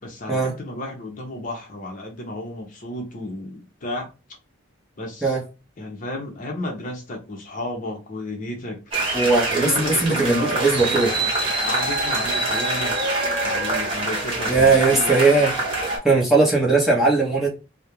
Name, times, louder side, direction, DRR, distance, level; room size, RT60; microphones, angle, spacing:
voice 1, 0.0-4.1 5.0-5.4 5.8-8.8 9.5-13.0 13.4-15.2, left 1 dB, 40° left, 0.6 m, -32 dB
sound 1, 8.9-16.0, right 2 dB, 25° right, 0.9 m, -25 dB
voice 2, 9.1-11.1 14.5-15.5 16.0-17.5, right 3 dB, ahead, 0.7 m, -18 dB
2.4 x 2.1 x 2.8 m
head